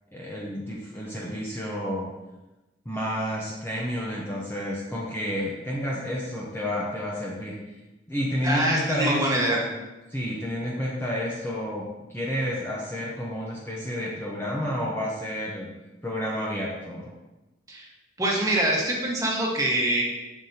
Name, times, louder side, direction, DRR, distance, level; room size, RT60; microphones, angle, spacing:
voice 1, 0.1-2.1 2.9-7.6 8.1-9.7 10.1-15.7 16.0-17.1, equal, 15° left, -5 dB, 0.8 m, -30 dB
voice 2, 8.4-9.6 17.7-17.9 18.2-20.0, right 1 dB, 20° right, -2 dB, 1.4 m, -24 dB
7.2 x 6.6 x 2.8 m, 1.1 s
head